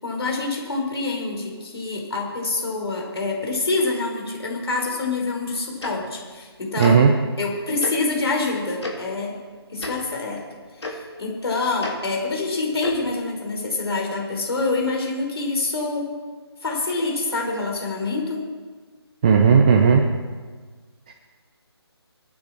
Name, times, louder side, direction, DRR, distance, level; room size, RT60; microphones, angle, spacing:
voice 1, 0.0-7.0 7.4-9.4 9.7-10.4 10.8-16.1 16.6-18.4, left 3 dB, 65° left, 0 dB, 5.3 m, -26 dB
Tick-tock, 5.8-5.9 6.8-6.9 7.8-7.9 8.8-8.9 9.8-9.9 10.8-10.9 11.8-11.9 12.8-13.0, left 3 dB, 80° left, 3.4 m, -31 dB
voice 2, 6.8-7.1 19.2-20.0 21.1-21.2, right 6 dB, 20° right, 2 dB, 0.6 m, -15 dB
22.0 x 9.9 x 4.6 m, 1.5 s
figure-of-eight pair, 165°, 14 cm